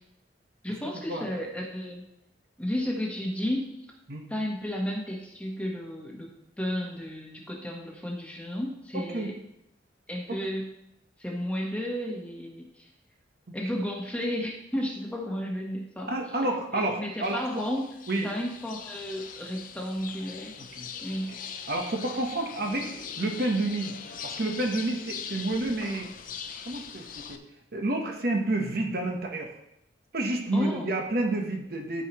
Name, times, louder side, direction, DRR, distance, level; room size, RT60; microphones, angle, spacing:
voice 1, 0.6-2.0 2.6-3.8 4.3-9.3 10.1-10.7 11.2-12.9 13.5-16.1 16.7-17.9 18.2-20.5 21.0-21.3 30.5-30.9, equal, 5° left, -1 dB, 1.2 m, -33 dB
voice 2, 16.1-17.6 18.1-18.3 20.8-20.9 21.7-23.9 24.2-26.1 26.7-27.4 27.7-29.5 30.1-32.0, right 2 dB, 55° right, 2 dB, 1.1 m, -29 dB
sound 1, 17.2-27.4, left 7 dB, 50° left, 0.5 m, -41 dB
13.0 x 4.7 x 3.1 m, 0.79 s
head